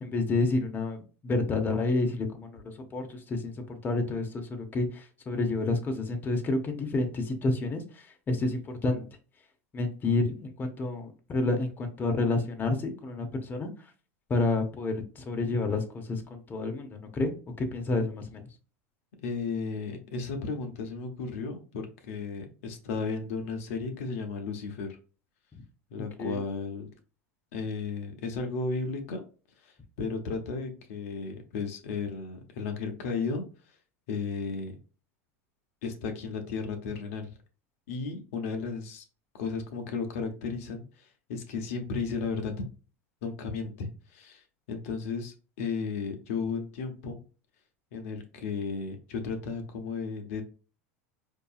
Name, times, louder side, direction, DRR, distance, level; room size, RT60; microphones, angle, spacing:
voice 1, 0.0-9.1 9.7-13.9 14.3-18.4 25.5-25.6 26.0-26.4, left 2 dB, 25° left, 4 dB, 0.8 m, -30 dB
voice 2, 19.2-25.0 25.9-26.9 27.5-29.2 29.6-33.4 34.1-34.7 35.8-37.3 37.9-39.0 39.3-42.7 43.2-47.2 47.9-50.4, left 4 dB, 70° left, 4 dB, 0.8 m, -34 dB
4.5 x 2.7 x 2.4 m, 0.36 s
hypercardioid pair, 100°, 8 cm